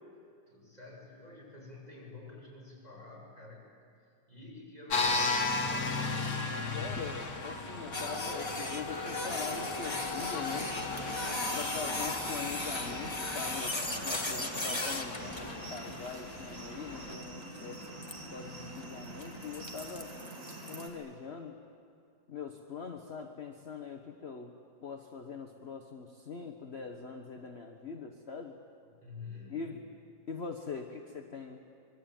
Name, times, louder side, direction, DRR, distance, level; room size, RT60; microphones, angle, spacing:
voice 1, 0.5-3.6 4.0-5.7 28.8-29.6, left 3 dB, 20° right, -3 dB, 7.0 m, -49 dB
sound 1, 4.9-17.1, left 3 dB, 55° left, 2.1 m, -37 dB
voice 2, 6.7-10.7 11.5-13.8 14.0-18.0 18.3-20.1 20.7-21.5 22.3-24.5 24.8-28.6 29.5-29.8 30.3-31.6, left 5 dB, 40° left, 3 dB, 1.4 m, -42 dB
Printer, 7.9-20.0, left 2 dB, 15° left, 1.6 m, -37 dB
sound 2, 9.8-20.9, right 1 dB, 45° right, 3.2 m, -46 dB
25.5 x 22.5 x 9.1 m, 2.3 s
omnidirectional pair, 2.0 m